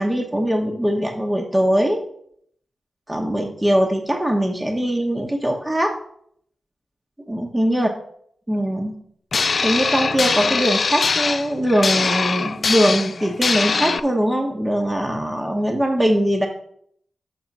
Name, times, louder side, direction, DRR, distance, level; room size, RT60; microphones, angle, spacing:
voice 1, 0.0-2.0 3.1-5.9 7.3-7.9 8.5-9.0 9.6-16.5, equal, 20° right, 1 dB, 1.1 m, -21 dB
sound 1, 9.3-14.0, left 4 dB, 65° left, 0.4 m, -22 dB
6.1 x 5.3 x 5.4 m, 0.67 s
cardioid pair, 45°, 0 cm